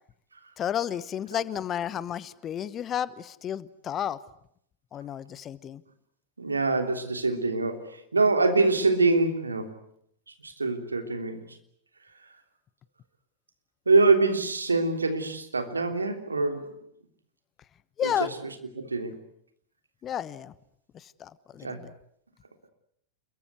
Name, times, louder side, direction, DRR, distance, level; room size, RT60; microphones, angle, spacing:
voice 1, 0.6-4.2 4.9-5.8 18.0-18.3 20.0-20.5 20.9-21.9, left 9 dB, 25° left, 18 dB, 1.1 m, -32 dB
voice 2, 6.4-9.7 10.4-11.5 13.9-16.7 18.0-18.3 18.8-19.2 21.6-21.8, right 3 dB, 80° right, 6 dB, 3.2 m, -24 dB
28.5 x 22.5 x 8.2 m, 0.70 s
figure-of-eight pair, 90°, 0 cm